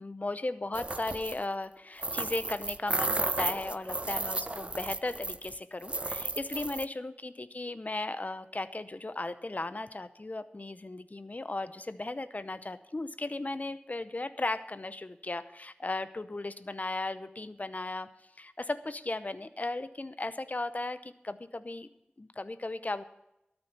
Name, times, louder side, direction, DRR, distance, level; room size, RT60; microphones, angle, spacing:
voice 1, 0.0-18.1 18.4-21.9 22.2-23.0, left 2 dB, 45° left, 13 dB, 0.7 m, -36 dB
sound 1, 0.7-1.4 2.0-5.6 5.8-6.9, right 2 dB, 35° right, 0.4 m, -33 dB
13.0 x 8.9 x 5.8 m, 0.88 s
wide cardioid pair, 40°, 4 cm